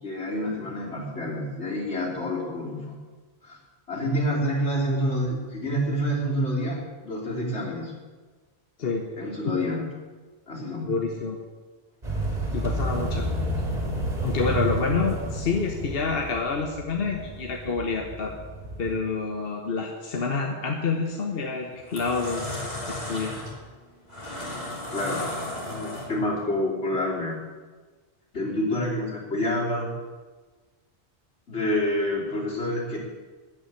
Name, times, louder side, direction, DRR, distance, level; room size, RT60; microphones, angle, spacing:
voice 1, 0.0-3.0 3.4-3.6 3.9-7.9 9.2-9.8 10.5-10.9 24.9-25.2 25.7-27.4 28.3-29.9 31.5-33.0, equal, 80° left, -3 dB, 3.3 m, -28 dB
voice 2, 10.8-11.4 12.5-13.3 14.2-18.3 18.8-22.5 22.9-23.3, left 4 dB, 60° left, 2 dB, 1.2 m, -28 dB
sound 1, 12.0-19.0, right 1 dB, 40° right, 2.6 m, -31 dB
sound 2, 21.0-21.2 21.7-26.4, left 1 dB, 40° left, 3.3 m, -34 dB
13.5 x 6.0 x 9.3 m, 1.4 s
omnidirectional pair, 1.1 m